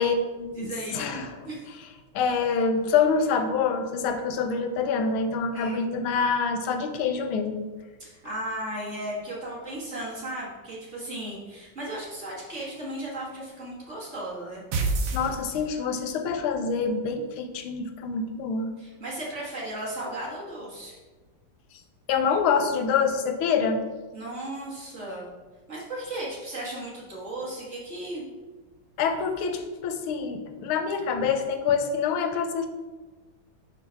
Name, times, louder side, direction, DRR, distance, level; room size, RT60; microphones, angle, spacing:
voice 1, 0.0-1.5 2.1-7.7 15.1-18.7 22.1-23.8 29.0-32.7, left 5 dB, 90° left, 7 dB, 1.5 m, -26 dB
voice 2, 0.5-1.0 1.4-1.7 5.5-5.9 8.0-14.6 18.8-21.0 24.1-25.3 25.7-28.2, right 1 dB, 40° right, -6 dB, 1.5 m, -36 dB
sound 1, 14.7-16.0, right 2 dB, 65° right, 1.1 m, -27 dB
4.6 x 4.0 x 5.5 m, 1.3 s
omnidirectional pair, 2.3 m